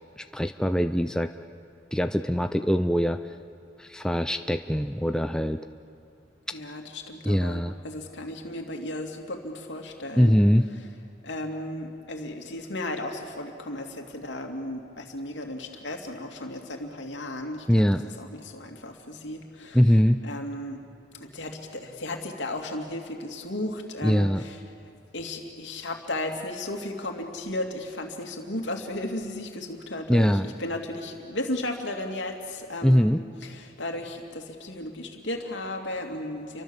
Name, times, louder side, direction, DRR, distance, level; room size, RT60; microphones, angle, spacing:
voice 1, 0.2-1.3 1.9-3.2 3.8-5.6 7.2-7.7 10.2-10.7 17.7-18.0 19.7-20.2 24.0-24.4 30.1-30.5 32.8-33.2, equal, 5° left, 8 dB, 0.5 m, -22 dB
voice 2, 6.5-10.4 11.2-17.7 18.0-19.8 20.2-20.8 21.2-24.6 25.1-33.1 33.4-36.6, left 1 dB, 70° left, 3 dB, 3.0 m, -35 dB
30.0 x 24.0 x 7.4 m, 2.5 s
head